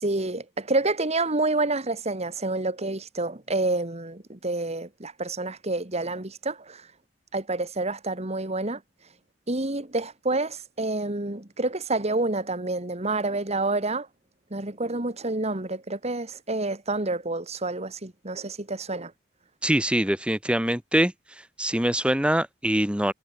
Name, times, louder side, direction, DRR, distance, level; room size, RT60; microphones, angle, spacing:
voice 1, 0.0-6.9 7.3-8.8 9.5-14.1 14.5-19.1, right 2 dB, 35° right, 2.2 m, -28 dB
voice 2, 19.6-21.1 21.6-23.1, right 1 dB, 5° right, 1.9 m, -23 dB
head